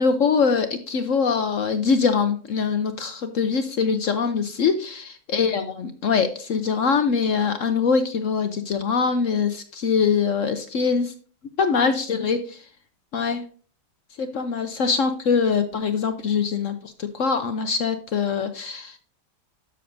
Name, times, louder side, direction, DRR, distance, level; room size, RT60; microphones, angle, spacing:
voice 1, 0.0-11.1 11.6-12.6 13.1-13.4 14.2-19.0, left 5 dB, 60° left, 9 dB, 0.9 m, -23 dB
12.0 x 6.6 x 2.6 m, 0.41 s
omnidirectional pair, 1.9 m